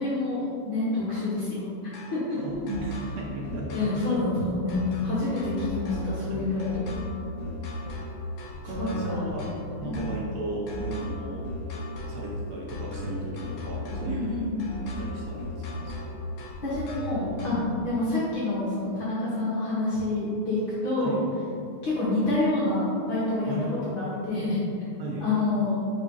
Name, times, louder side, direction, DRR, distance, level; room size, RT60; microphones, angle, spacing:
voice 1, 0.0-2.4 3.7-6.9 8.6-9.3 9.8-10.0 14.0-14.7 16.6-21.2 21.8-24.6 25.2-25.8, left 2 dB, 60° left, -9 dB, 1.4 m, -28 dB
sound 1, 1.9-17.8, left 1 dB, 80° left, 1.1 m, -35 dB
voice 2, 2.3-3.9 6.3-6.4 7.5-8.2 8.6-11.5 12.1-14.6 15.0-16.2 21.0-21.2 23.5-23.8 25.0-25.2, right 1 dB, 70° right, -3 dB, 1.9 m, -36 dB
4.8 x 3.9 x 5.3 m, 2.6 s
omnidirectional pair, 3.4 m